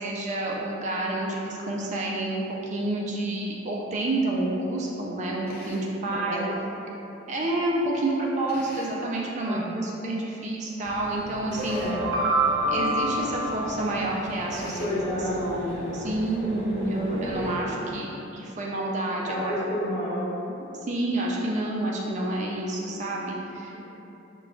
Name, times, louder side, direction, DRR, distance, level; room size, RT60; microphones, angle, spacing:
voice 1, 0.0-6.5 7.3-11.8 12.7-19.5 20.9-23.8, right 2 dB, 40° right, -3 dB, 0.4 m, -29 dB
Drill, 5.5-6.0 8.5-9.1 11.5-12.1 14.5-15.1, left 1 dB, 55° left, 0.5 m, -44 dB
voice 2, 6.1-6.6 9.4-9.8 11.7-12.1 14.6-17.0 17.9-18.2 19.3-20.3 23.7-23.8, equal, 35° left, -10 dB, 1.1 m, -32 dB
sound 1, 10.8-17.6, equal, 80° left, 1.0 m, -39 dB
sound 2, 11.4-14.5, right 1 dB, 75° right, 0.7 m, -27 dB
6.2 x 2.2 x 2.3 m, 3.0 s
head